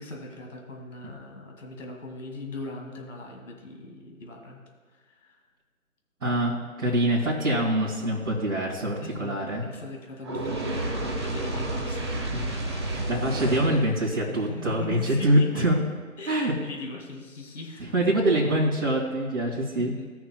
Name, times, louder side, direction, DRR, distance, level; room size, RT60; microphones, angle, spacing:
voice 1, 0.0-4.6 4.9-5.4 9.0-12.7 14.2-15.7 16.2-17.9 19.8-20.1, left 2 dB, 55° left, 1 dB, 2.2 m, -40 dB
voice 2, 6.2-9.6 12.9-15.8 16.3-16.5 17.9-19.9, right 1 dB, 65° right, -6 dB, 2.4 m, -24 dB
Fire, 10.2-13.9, right 2 dB, 20° right, 0.8 m, -30 dB
17.5 x 6.2 x 2.2 m, 1.4 s
figure-of-eight pair, 155°, 43 cm